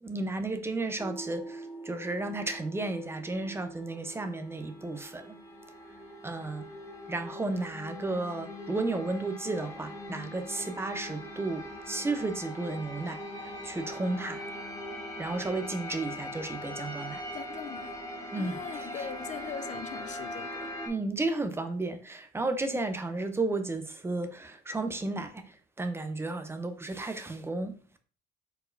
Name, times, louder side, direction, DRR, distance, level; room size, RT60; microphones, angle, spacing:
voice 1, 0.0-5.4 6.2-6.7 7.1-14.4 15.2-17.2 18.3-19.0 20.9-27.8, right 2 dB, 15° right, 0.5 m, -33 dB
sound 1, 1.0-20.9, equal, 20° left, 1.1 m, -41 dB
voice 2, 17.3-18.0 18.4-20.8, left 8 dB, 45° left, 0.4 m, -41 dB
4.5 x 4.0 x 2.6 m
cardioid pair, 110°, 17 cm